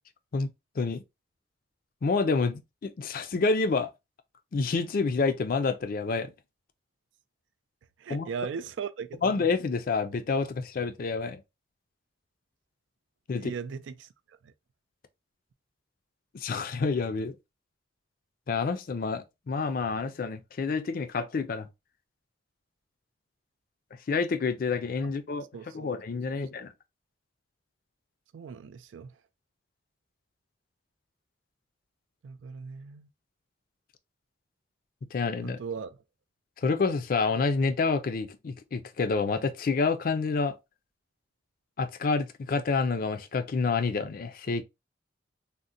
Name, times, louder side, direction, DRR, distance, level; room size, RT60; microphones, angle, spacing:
voice 1, 2.0-3.9 4.5-6.3 8.1-8.3 9.2-11.4 13.3-13.5 16.3-17.4 18.5-21.7 24.1-25.5 25.7-26.7 35.1-35.6 36.6-40.6 41.8-44.6, left 4 dB, 50° left, 0.4 m, -28 dB
voice 2, 8.0-9.5 13.3-14.1 14.4-14.5 25.0-25.1 25.5-25.9 26.3-26.4 28.3-29.2 32.2-33.1 35.4-36.0, right 6 dB, 90° right, 0.3 m, -38 dB
3.7 x 2.1 x 2.5 m
head